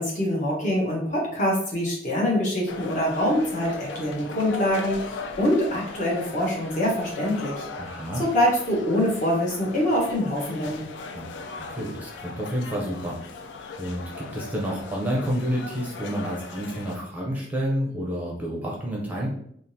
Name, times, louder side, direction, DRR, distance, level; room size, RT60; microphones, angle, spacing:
voice 1, 0.0-7.7 8.2-10.8, left 1 dB, 45° left, -3 dB, 1.1 m, -24 dB
sound 1, 2.7-17.0, left 3 dB, 85° left, 0.4 m, -39 dB
voice 2, 7.8-8.2 11.1-11.3 11.7-13.2 13.8-19.3, equal, 10° right, -3 dB, 0.6 m, -29 dB
3.6 x 2.4 x 2.7 m, 0.68 s
head